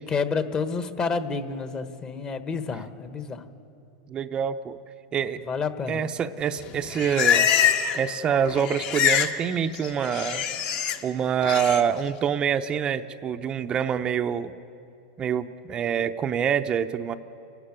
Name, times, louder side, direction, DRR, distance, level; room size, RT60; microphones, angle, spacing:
voice 1, 0.0-3.4 5.5-6.0, left 5 dB, 25° left, 10 dB, 1.3 m, -29 dB
voice 2, 4.1-4.8 5.1-5.4 5.9-7.5 7.9-10.4 11.0-14.5 15.2-17.2, right 8 dB, 30° right, 8 dB, 0.6 m, -26 dB
Livestock farm animals working animals, 6.6-8.1 8.3-9.4 9.6-11.0 11.4-11.8, left 9 dB, 45° left, 1.4 m, -24 dB
29.5 x 12.0 x 8.9 m, 2.7 s
hypercardioid pair, 120°, 3 cm